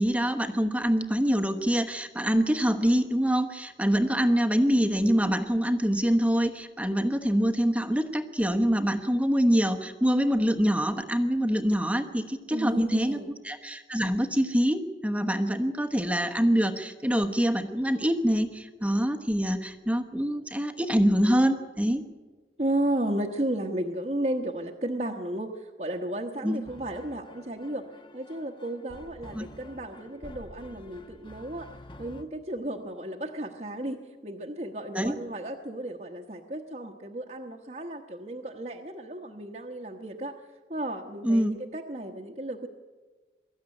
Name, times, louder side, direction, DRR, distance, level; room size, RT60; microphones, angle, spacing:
voice 1, 0.0-22.0 26.4-26.6 29.3-29.4 34.9-35.1 41.2-41.6, equal, 10° right, 6 dB, 1.1 m, -25 dB
voice 2, 12.5-13.3 22.6-27.9 28.1-31.7 32.0-40.3 40.7-42.7, right 1 dB, 40° right, -1 dB, 1.2 m, -33 dB
sound 1, 26.6-32.2, left 1 dB, 30° left, 1.1 m, -48 dB
23.0 x 14.0 x 9.9 m, 1.4 s
head